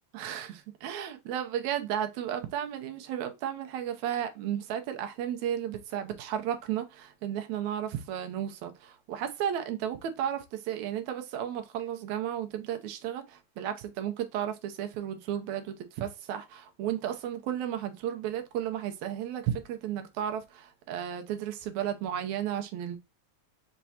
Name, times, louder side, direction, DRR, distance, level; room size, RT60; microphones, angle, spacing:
voice 1, 0.1-23.0, right 10 dB, 80° right, 2.1 m, -33 dB
5.9 x 3.2 x 2.8 m
omnidirectional pair, 3.3 m